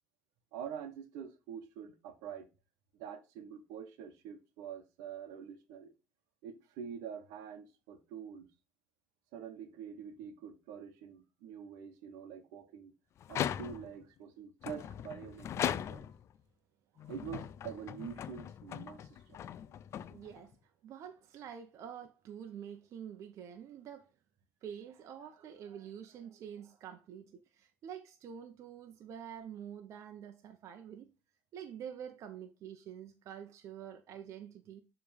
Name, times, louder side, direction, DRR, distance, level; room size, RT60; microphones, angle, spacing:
voice 1, 0.5-2.5 3.0-5.9 6.4-8.5 9.3-12.9 13.3-16.1 17.1-19.4, right 8 dB, 85° right, 1.1 m, -46 dB
sound 1, 13.2-14.0 14.6-16.3 17.0-20.5, left 10 dB, 55° left, 0.4 m, -39 dB
voice 2, 20.0-24.1 24.6-31.1 31.5-34.8, right 8 dB, 60° right, 0.9 m, -47 dB
6.9 x 3.4 x 5.0 m
supercardioid pair, 85°, 6 cm